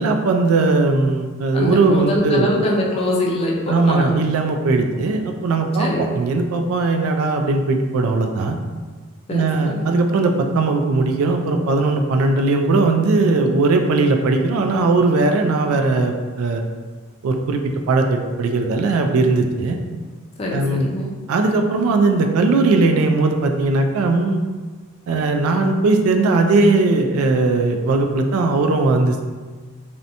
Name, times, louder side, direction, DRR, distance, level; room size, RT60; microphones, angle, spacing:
voice 1, 0.0-2.5 3.7-8.6 9.3-16.6 17.2-17.6 17.9-19.8 20.5-20.9 21.3-24.4 25.1-29.2, right 3 dB, 75° right, 4 dB, 0.3 m, -18 dB
voice 2, 1.5-4.1 5.8-6.1 9.3-9.8 20.4-21.1, left 1 dB, 25° left, -2 dB, 0.4 m, -23 dB
2.7 x 2.1 x 2.5 m, 1.4 s
head